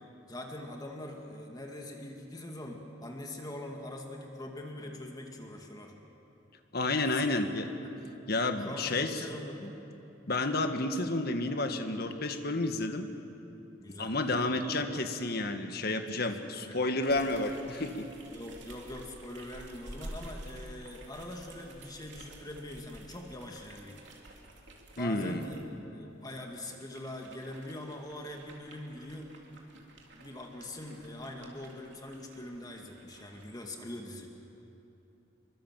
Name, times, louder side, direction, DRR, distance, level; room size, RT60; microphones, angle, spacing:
voice 1, 0.3-5.9 7.2-7.3 7.8-8.0 8.6-9.8 12.6-12.8 13.8-14.7 16.0-16.8 18.3-24.0 25.0-25.6 25.9-29.3 30.2-34.3, left 1 dB, 20° left, 1 dB, 2.1 m, -43 dB
voice 2, 6.7-7.7 8.3-9.1 10.3-13.1 14.0-18.1 25.0-25.4, left 2 dB, 55° left, 7 dB, 1.7 m, -30 dB
sound 1, 17.0-25.6 26.2-33.5, right 1 dB, 70° right, 3.3 m, -51 dB
26.0 x 23.5 x 7.6 m, 3.0 s
head